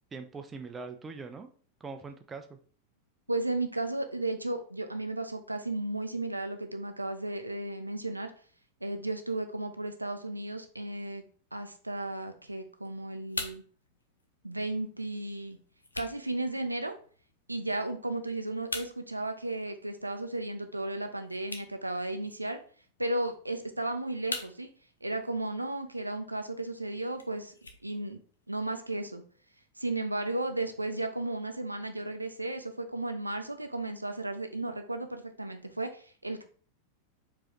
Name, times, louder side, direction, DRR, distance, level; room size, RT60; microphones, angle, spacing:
voice 1, 0.1-1.5 1.8-2.6, right 4 dB, 15° right, 6 dB, 0.5 m, -42 dB
voice 2, 3.3-8.3 8.8-11.2 11.5-13.6 14.4-15.6 15.9-16.9 17.5-22.6 23.0-24.7 25.0-27.5 27.8-28.2 28.5-29.2 29.8-36.4, right 2 dB, 85° right, 6 dB, 0.5 m, -34 dB
sound 1, 12.5-28.5, left 2 dB, 80° left, 0.6 m, -46 dB
4.7 x 3.0 x 3.0 m, 0.44 s
figure-of-eight pair, 90°, 0 cm